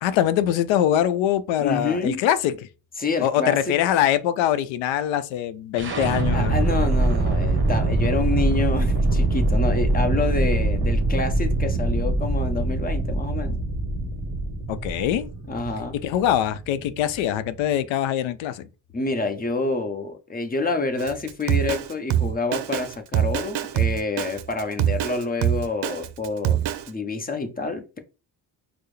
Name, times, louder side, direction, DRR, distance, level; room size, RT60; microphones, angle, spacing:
voice 1, 0.0-2.5 3.2-6.6 14.7-15.3 16.0-18.7, left 11 dB, 85° left, 0.6 m, -23 dB
voice 2, 1.6-2.2 3.0-3.7 6.3-13.6 15.5-16.0 18.9-28.0, left 3 dB, 20° left, 0.7 m, -28 dB
sound 1, 5.8-17.6, right 2 dB, 25° right, 1.0 m, -23 dB
Drum kit, 21.0-26.9, right 11 dB, 60° right, 0.6 m, -24 dB
4.6 x 2.0 x 3.1 m
cardioid pair, 85°, 45 cm